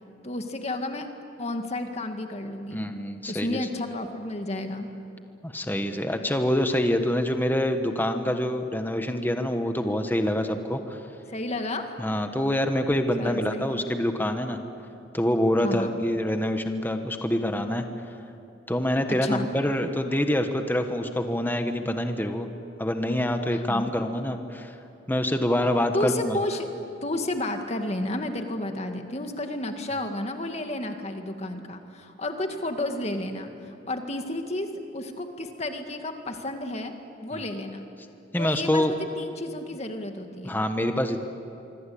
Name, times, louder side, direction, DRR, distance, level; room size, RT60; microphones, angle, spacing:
voice 1, 0.2-1.1 1.4-2.8 3.3-4.9 11.3-11.9 13.2-13.9 15.6-15.9 19.2-19.5 23.5-23.9 25.9-26.7 27.0-34.7 34.9-36.9 37.2-37.8 38.4-40.6, left 1 dB, 35° left, 5 dB, 2.1 m, -31 dB
voice 2, 2.7-3.6 5.4-11.0 12.0-14.6 15.1-17.8 18.7-22.5 22.8-24.7 25.1-26.4 38.3-38.9 40.4-41.2, left 1 dB, 10° left, 6 dB, 1.3 m, -26 dB
25.0 x 24.5 x 8.7 m, 2.8 s
head